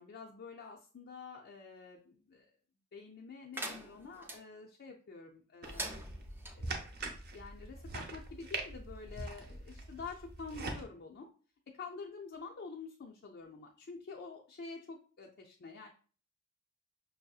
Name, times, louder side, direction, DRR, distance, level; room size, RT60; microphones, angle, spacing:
voice 1, 0.0-2.5 2.9-6.0 6.5-6.9 7.3-11.3 11.7-15.9, left 4 dB, 50° left, 0 dB, 0.4 m, -48 dB
sound 1, 3.5-4.4 5.6-6.5, right 1 dB, 10° right, 0.4 m, -43 dB
sound 2, 5.6-10.8, right 2 dB, 50° right, 0.7 m, -43 dB
5.4 x 2.7 x 2.3 m, 0.40 s
head